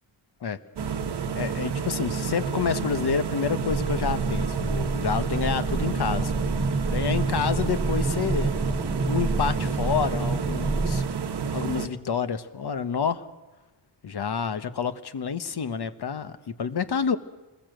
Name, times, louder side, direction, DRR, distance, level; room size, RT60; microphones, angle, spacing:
sound 1, 0.8-11.9, right 6 dB, 55° right, 1.1 m, -30 dB
voice 1, 1.4-6.3 6.9-8.5 9.1-11.0 11.5-13.2 14.0-17.2, left 6 dB, 55° left, 12 dB, 1.2 m, -28 dB
sound 2, 3.7-11.0, right 2 dB, 10° right, 0.8 m, -28 dB
26.5 x 20.5 x 7.8 m, 1.1 s
wide cardioid pair, 145°, 48 cm